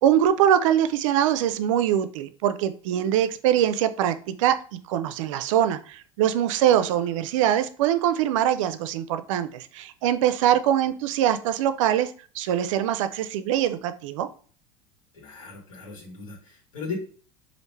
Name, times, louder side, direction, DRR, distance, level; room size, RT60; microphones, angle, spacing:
voice 1, 0.0-14.3, right 10 dB, 75° right, 11 dB, 0.4 m, -23 dB
voice 2, 15.1-17.0, left 5 dB, 85° left, -1 dB, 1.4 m, -38 dB
3.1 x 2.5 x 3.2 m, 0.42 s
hypercardioid pair, 95°, 17 cm